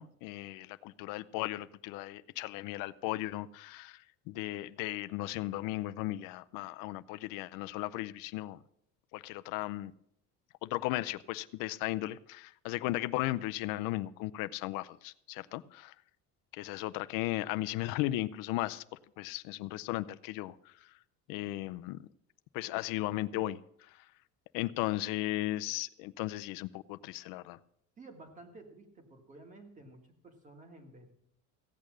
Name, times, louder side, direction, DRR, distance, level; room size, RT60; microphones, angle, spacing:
voice 1, 0.0-8.6 9.1-9.9 10.6-15.9 16.5-18.8 19.2-20.6 20.8-20.9 21.3-22.1 22.5-24.0 24.5-27.6, left 17 dB, 80° left, 13 dB, 0.6 m, -36 dB
voice 2, 28.0-31.2, right 2 dB, 20° right, 5 dB, 1.7 m, -53 dB
15.5 x 8.6 x 6.2 m, 0.71 s
cardioid pair, 175°, 33 cm